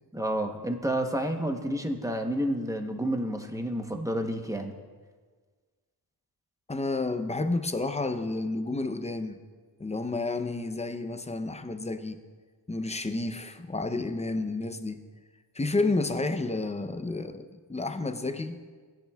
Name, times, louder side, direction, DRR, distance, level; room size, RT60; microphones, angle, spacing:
voice 1, 0.1-4.7, right 1 dB, 5° right, 4 dB, 0.9 m, -30 dB
voice 2, 6.7-9.4 9.8-12.2 12.7-15.0 15.5-18.6, left 2 dB, 15° left, 9 dB, 0.6 m, -30 dB
16.5 x 10.5 x 2.3 m, 1.5 s
cardioid pair, 85°, 43 cm